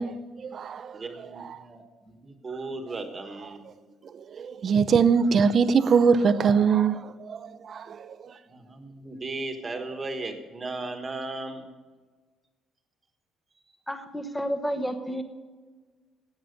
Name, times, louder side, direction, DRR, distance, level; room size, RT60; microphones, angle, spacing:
voice 1, 0.0-1.0 1.4-1.6 4.1-8.2, right 6 dB, 40° right, 0.6 m, -23 dB
voice 2, 0.9-3.7 8.5-11.6, right 2 dB, 25° right, 1.4 m, -36 dB
voice 3, 13.9-15.2, equal, 5° left, 1.0 m, -30 dB
14.5 x 9.1 x 5.2 m
cardioid pair, 150°, 0 cm